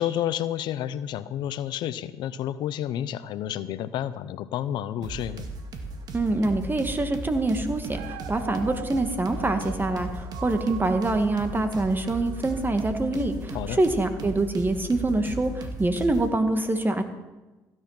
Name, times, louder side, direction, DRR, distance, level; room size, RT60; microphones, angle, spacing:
voice 1, 0.0-5.4 13.5-13.8, left 11 dB, 75° left, 15 dB, 0.6 m, -30 dB
sound 1, 5.0-16.3, right 1 dB, 60° right, 2.3 m, -37 dB
voice 2, 6.1-17.0, right 2 dB, 25° right, 8 dB, 2.1 m, -25 dB
Dog, 7.9-13.0 13.6-13.7, right 11 dB, 85° right, 0.9 m, -43 dB
15.5 x 11.0 x 5.9 m, 1.1 s
supercardioid pair, 60°, 8 cm